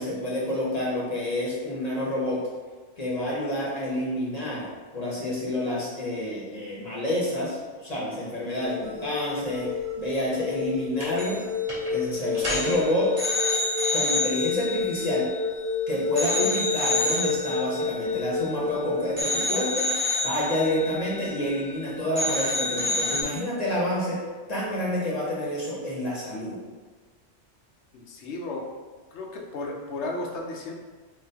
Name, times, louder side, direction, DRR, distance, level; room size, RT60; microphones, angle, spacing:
voice 1, 0.0-2.4 3.0-4.7 4.9-11.4 11.9-13.1 13.9-15.3 15.9-19.9 20.2-24.2 24.5-26.6, left 1 dB, 35° left, -6 dB, 0.9 m, -28 dB
sound 1, 8.6-19.2, left 4 dB, 60° right, 1.0 m, -30 dB
sound 2, 11.0-11.4 11.7-11.9 12.3-15.7 16.2-18.8 19.2-21.8 22.1-23.2, left 2 dB, 25° right, 1.2 m, -29 dB
voice 2, 27.9-28.7 29.1-30.7, left 2 dB, 70° left, 1 dB, 0.9 m, -34 dB
3.8 x 3.0 x 2.7 m, 1.4 s
omnidirectional pair, 1.2 m